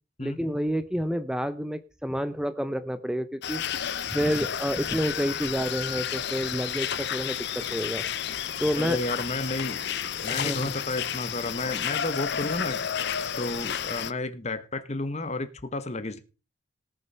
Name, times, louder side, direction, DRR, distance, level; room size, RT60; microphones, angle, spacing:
voice 1, 0.2-8.0 8.6-9.0 10.3-10.7, equal, 5° right, 12 dB, 0.6 m, -29 dB
sound 1, 3.4-14.1, left 9 dB, 55° left, 0.6 m, -31 dB
voice 2, 8.8-9.8 10.2-12.8 13.4-16.2, left 2 dB, 35° left, 11 dB, 1.2 m, -32 dB
18.5 x 6.6 x 5.5 m, 0.33 s
head